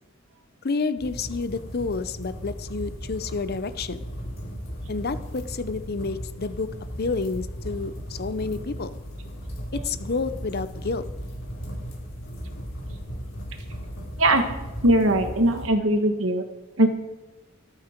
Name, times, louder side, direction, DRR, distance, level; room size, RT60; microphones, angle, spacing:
voice 1, 0.6-4.1 4.9-6.7 7.0-8.9 9.8-11.0, left 4 dB, 50° left, 13 dB, 0.7 m, -29 dB
sound 1, 1.0-15.7, equal, 80° left, 3.8 m, -36 dB
voice 2, 14.8-16.4 16.8-16.9, right 1 dB, 75° right, 6 dB, 1.5 m, -20 dB
14.0 x 12.5 x 4.5 m, 1.1 s
head